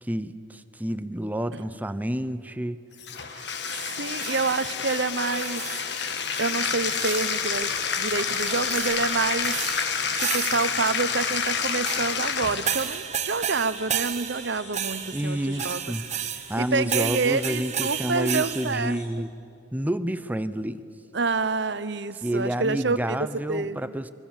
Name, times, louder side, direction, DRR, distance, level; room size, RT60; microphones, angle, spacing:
voice 1, 0.0-2.8 15.1-16.0 16.5-19.3 19.7-20.8 22.2-24.1, right 1 dB, 10° right, 13 dB, 0.7 m, -29 dB
Bathtub (filling or washing), 3.0-13.0, left 6 dB, 60° left, 1.5 m, -28 dB
voice 2, 4.0-5.6 6.4-9.6 10.1-15.8 16.6-19.0 21.1-23.2 23.5-23.9, right 4 dB, 65° right, 13 dB, 1.0 m, -28 dB
sound 1, 4.2-4.7 5.2-6.0 6.3-7.5 8.3-10.9 11.9-18.8, right 9 dB, 35° right, 1.0 m, -33 dB
sound 2, 6.6-19.1, left 1 dB, 35° left, 5.1 m, -45 dB
27.5 x 23.5 x 7.4 m, 2.4 s
head